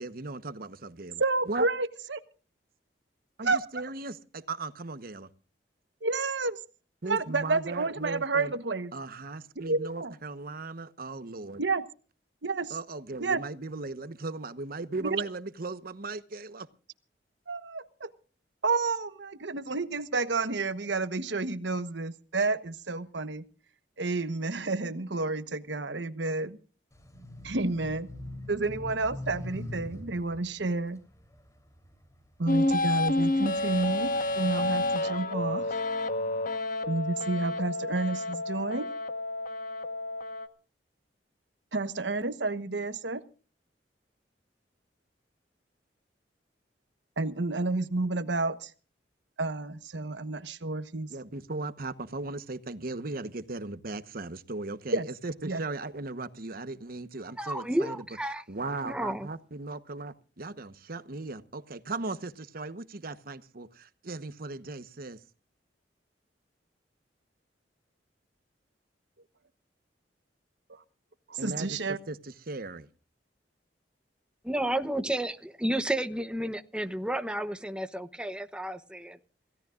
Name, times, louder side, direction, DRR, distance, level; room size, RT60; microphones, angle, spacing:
voice 1, 0.0-1.2 1.5-1.7 3.4-5.3 7.0-8.5 8.9-11.6 12.7-16.7 51.1-58.0 58.5-65.2 71.4-72.9, right 3 dB, 55° right, 1.1 m, -37 dB
voice 2, 1.2-2.2 3.4-3.8 6.0-6.6 7.0-8.9 9.6-10.1 11.6-11.8 12.4-12.8 13.2-13.4 15.0-15.2 17.5-18.1 18.6-23.4 24.0-26.6 27.4-28.1 28.5-31.0 32.4-35.8 36.9-38.9 41.7-43.2 47.2-48.7 49.4-51.1 54.9-55.1 55.4-55.6 70.7-70.8 71.3-72.0, right 3 dB, 85° right, 1.2 m, -30 dB
sound 1, 26.9-32.5 33.0-34.9, left 1 dB, 20° left, 3.5 m, -43 dB
sound 2, 32.5-40.5, left 2 dB, 55° left, 1.3 m, -30 dB
voice 3, 57.4-58.4 58.8-59.3 74.4-79.2, right 1 dB, 5° right, 0.9 m, -31 dB
27.5 x 17.0 x 2.5 m
head